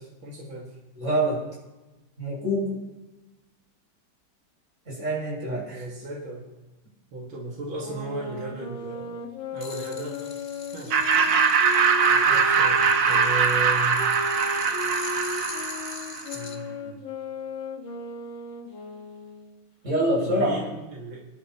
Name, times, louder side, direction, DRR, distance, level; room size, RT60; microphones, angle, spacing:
voice 1, 0.0-0.8 5.7-6.5 7.1-10.4 10.7-11.1 12.1-14.0 16.3-17.0 20.2-21.3, right 2 dB, 85° right, -3 dB, 2.8 m, -36 dB
voice 2, 1.0-1.4 2.2-2.8 4.9-5.8 19.8-20.5, right 1 dB, 35° right, -5 dB, 6.8 m, -25 dB
sound 1, 7.8-13.3 14.0-19.5, left 3 dB, 70° left, 2.3 m, -36 dB
sound 2, 9.6-16.6, left 3 dB, 40° left, 1.9 m, -42 dB
Laughter, 10.9-16.2, right 6 dB, 65° right, 1.7 m, -22 dB
26.0 x 11.0 x 3.0 m, 1.1 s
omnidirectional pair, 2.2 m